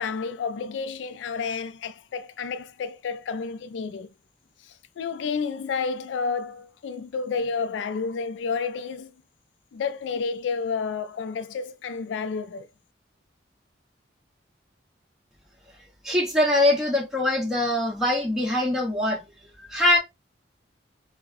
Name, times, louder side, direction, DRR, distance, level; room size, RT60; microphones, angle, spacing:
voice 1, 0.0-4.1 5.0-9.1 9.7-12.7, left 5 dB, 80° left, 0.3 m, -30 dB
voice 2, 16.0-19.2 19.7-20.0, left 1 dB, 5° right, 1.1 m, -22 dB
4.6 x 2.1 x 2.6 m
head